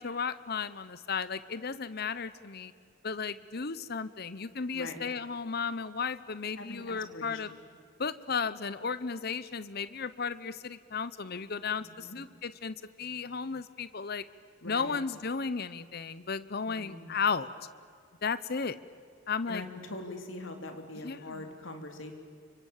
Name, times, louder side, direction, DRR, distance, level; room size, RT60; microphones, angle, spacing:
voice 1, 0.0-2.7 3.0-7.5 8.0-14.2 14.7-17.5 18.2-18.8 19.3-19.6 21.0-21.4, left 5 dB, 50° left, 15 dB, 0.8 m, -34 dB
voice 2, 4.7-5.0 6.6-7.6 11.8-12.2 14.6-15.0 16.7-17.2 19.5-22.1, left 2 dB, 65° left, 5 dB, 3.5 m, -43 dB
29.0 x 25.0 x 7.3 m, 2.2 s
head